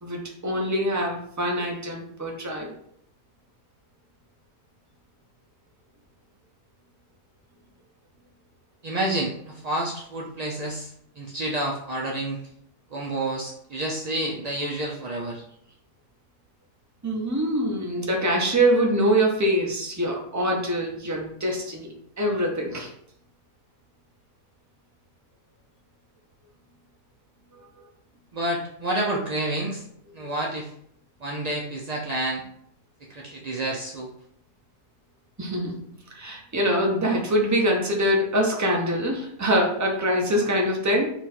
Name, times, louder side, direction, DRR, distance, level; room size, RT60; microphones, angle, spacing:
voice 1, 0.0-2.7 17.0-22.9 27.5-27.6 30.1-30.3 35.4-35.8 36.1-41.1, equal, 20° right, -1 dB, 0.5 m, -24 dB
voice 2, 8.8-10.9 11.2-12.4 12.9-15.4 28.3-29.8 30.1-30.7 31.2-32.4 33.1-34.1, right 1 dB, 75° right, -2 dB, 0.3 m, -29 dB
4.1 x 2.4 x 4.1 m, 0.68 s
omnidirectional pair, 1.4 m